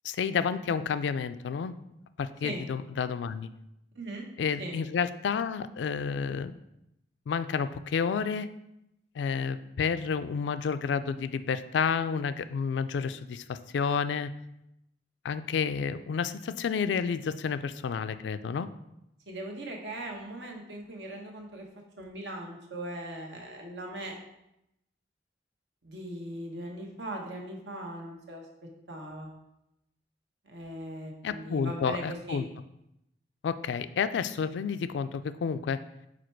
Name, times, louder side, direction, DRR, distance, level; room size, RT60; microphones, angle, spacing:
voice 1, 0.0-1.8 2.2-3.5 4.4-6.6 7.3-8.5 9.2-14.3 15.2-18.7 31.2-32.4 33.4-35.8, left 6 dB, 85° left, 12 dB, 0.3 m, -30 dB
voice 2, 3.9-4.3 4.6-4.8 19.3-21.7 22.0-24.1 25.8-28.5 28.9-29.3 30.4-32.4, right 1 dB, 80° right, 1 dB, 1.1 m, -39 dB
5.0 x 4.1 x 4.5 m, 0.85 s
head